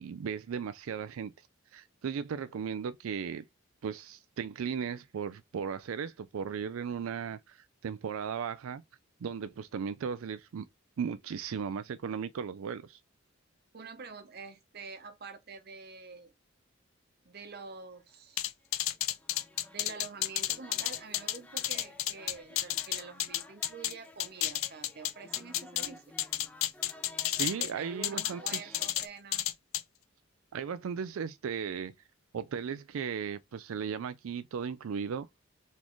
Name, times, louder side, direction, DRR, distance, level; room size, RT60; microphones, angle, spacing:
voice 1, 0.0-1.5 1.7-3.4 3.8-8.8 9.2-10.7 11.0-13.0 27.4-28.7 30.5-31.9 32.3-35.3, right 6 dB, 90° right, 0.4 m, -36 dB
voice 2, 13.7-16.3 17.2-18.5 19.7-26.1 27.6-29.5, right 4 dB, 50° right, 0.8 m, -47 dB
sound 1, 17.9-29.1, left 1 dB, 5° left, 0.5 m, -54 dB
sound 2, 18.4-23.9 24.2-25.9 26.2-27.7 28.0-29.1 29.3-29.8, left 13 dB, 85° left, 0.5 m, -31 dB
4.1 x 3.6 x 3.1 m
head